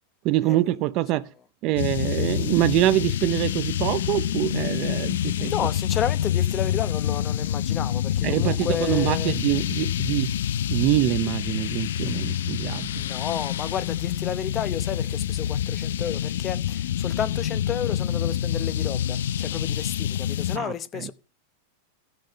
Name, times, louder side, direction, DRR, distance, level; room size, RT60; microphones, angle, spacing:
voice 1, 0.2-1.3 1.6-5.5 8.2-10.3 10.7-12.9 20.5-21.1, right 16 dB, 35° right, 0.7 m, -25 dB
sound 1, 1.8-20.6, left 10 dB, 85° left, 0.6 m, -27 dB
voice 2, 5.4-9.3 12.9-21.1, left 9 dB, 25° left, 0.8 m, -32 dB
15.0 x 6.6 x 5.6 m
supercardioid pair, 155°, 0 cm